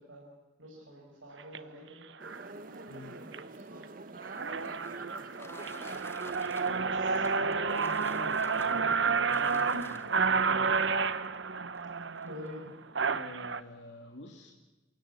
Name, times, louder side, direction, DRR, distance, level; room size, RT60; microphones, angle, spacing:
voice 1, 0.0-2.0 3.1-3.9 12.2-12.8, left 1 dB, 80° right, -2 dB, 6.1 m, -48 dB
sound 1, 1.4-1.6 2.2-2.5 3.0-3.4 3.8-3.9 4.2-13.6, right 5 dB, 65° right, 1.0 m, -30 dB
sound 2, 2.2-7.6, right 2 dB, 45° right, 1.0 m, -46 dB
sound 3, 4.2-10.4 11.2-11.3 11.7-11.8 12.2-12.5, left 2 dB, 10° left, 1.4 m, -53 dB
voice 2, 6.6-10.9 13.1-14.5, left 1 dB, 65° left, 1 dB, 2.6 m, -47 dB
29.0 x 17.0 x 8.4 m, 1.1 s
head